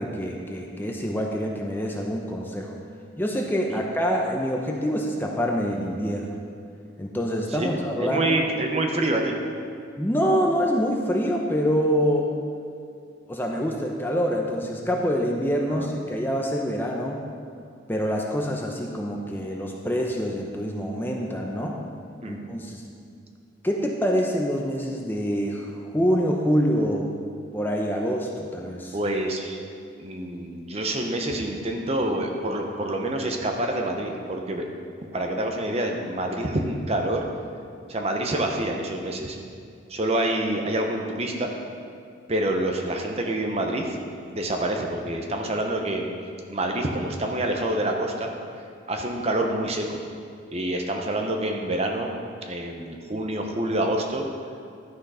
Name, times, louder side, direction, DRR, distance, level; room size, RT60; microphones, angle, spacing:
voice 1, 0.0-2.7 3.2-6.4 7.0-8.3 10.0-12.3 13.3-17.2 17.9-21.8 22.2-22.8 23.6-27.1 27.5-28.9, equal, 10° left, 0 dB, 0.6 m, -26 dB
voice 2, 8.0-9.3 15.7-15.9 22.2-22.4 28.9-29.6 30.0-34.6 35.1-37.3 37.9-39.4 39.9-41.5 42.3-44.0 44.3-46.1 46.5-48.3 48.9-50.0 50.5-52.1 52.4-54.3, right 1 dB, 30° right, 2 dB, 0.8 m, -27 dB
11.5 x 6.3 x 4.9 m, 2.3 s
head